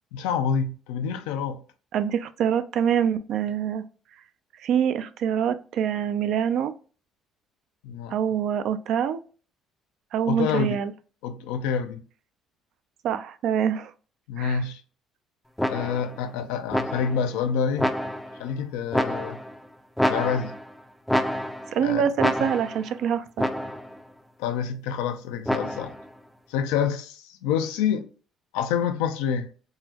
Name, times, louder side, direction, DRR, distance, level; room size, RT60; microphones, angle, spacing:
voice 1, 0.1-1.6 7.8-8.2 10.3-10.8 11.2-12.0 14.3-14.8 15.7-17.9 18.4-19.4 20.1-20.5 21.8-22.1 24.4-25.9 26.5-28.1 28.5-29.5, left 7 dB, 85° left, 0.4 m, -27 dB
voice 2, 1.9-3.8 4.6-6.7 8.1-9.2 10.1-10.9 13.0-13.9 14.4-14.6 21.7-23.5, right 8 dB, 70° right, 0.3 m, -25 dB
sound 1, 15.6-16.2 16.7-17.3 17.8-18.4 18.9-19.6 20.0-20.7 21.1-21.8 22.2-22.9 23.4-24.0 25.5-26.1, equal, 5° left, 0.4 m, -27 dB
3.7 x 2.0 x 2.8 m
supercardioid pair, 65°, 0 cm